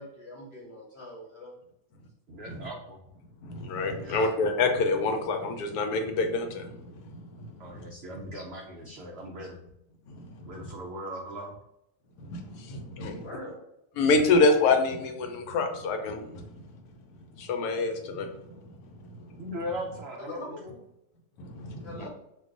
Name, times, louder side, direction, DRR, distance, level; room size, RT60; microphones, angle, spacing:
voice 1, 0.0-1.5 13.0-13.6 20.3-20.6 21.8-22.1, left 1 dB, 50° left, -3 dB, 1.0 m, -42 dB
voice 2, 2.3-3.0 4.0-4.3 7.6-9.6 10.5-11.6 19.4-20.8, equal, 80° right, 0 dB, 0.5 m, -39 dB
voice 3, 3.4-7.9 10.1-10.5 12.2-13.3 14.0-16.5 17.4-18.3 21.4-22.1, left 3 dB, 90° left, 5 dB, 1.1 m, -27 dB
2.5 x 2.3 x 3.7 m, 0.84 s
omnidirectional pair, 1.6 m